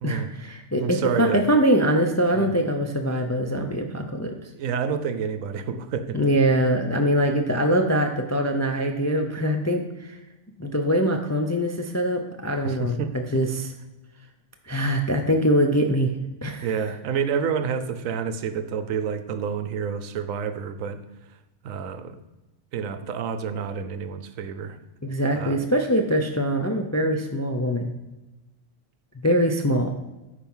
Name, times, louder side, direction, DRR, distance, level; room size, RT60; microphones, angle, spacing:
voice 1, 0.0-4.3 6.1-10.1 10.6-13.7 14.7-16.1 16.4-16.7 25.0-27.9 29.2-29.9, equal, 25° left, 4 dB, 0.3 m, -23 dB
voice 2, 0.8-1.4 2.3-2.5 4.5-6.2 12.6-13.1 16.6-21.0 21.6-22.2 22.7-24.8 25.4-25.6, right 6 dB, 85° right, 10 dB, 1.1 m, -29 dB
9.1 x 4.4 x 5.5 m, 1.0 s
omnidirectional pair, 1.4 m